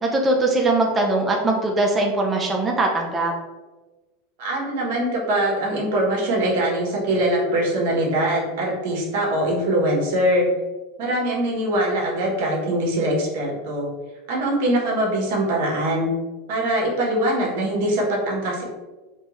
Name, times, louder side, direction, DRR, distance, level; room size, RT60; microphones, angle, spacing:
voice 1, 0.0-3.3, right 2 dB, 20° right, 0 dB, 0.6 m, -21 dB
voice 2, 4.4-10.5 11.0-13.9 14.3-16.1 16.5-18.6, right 1 dB, 65° right, -2 dB, 1.2 m, -22 dB
4.4 x 2.3 x 3.1 m, 1.2 s
supercardioid pair, 120°, 0 cm